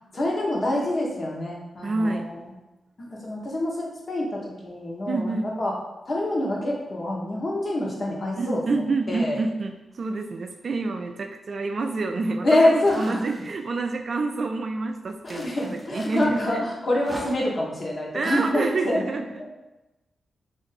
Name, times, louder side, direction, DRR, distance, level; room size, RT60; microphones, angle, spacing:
voice 1, 0.1-2.5 3.0-5.7 6.1-8.8 9.1-9.4 12.4-13.3 15.2-19.0 19.4-19.5, left 1 dB, 40° left, -2 dB, 0.9 m, -26 dB
voice 2, 1.8-2.5 5.1-5.5 8.4-16.6 18.1-19.2, right 3 dB, 50° right, 5 dB, 0.3 m, -28 dB
sound 1, 12.8-13.8 15.2-16.4 16.9-17.7, equal, ahead, 0.6 m, -41 dB
3.1 x 2.5 x 4.1 m, 1.0 s
cardioid pair, 75°, 0 cm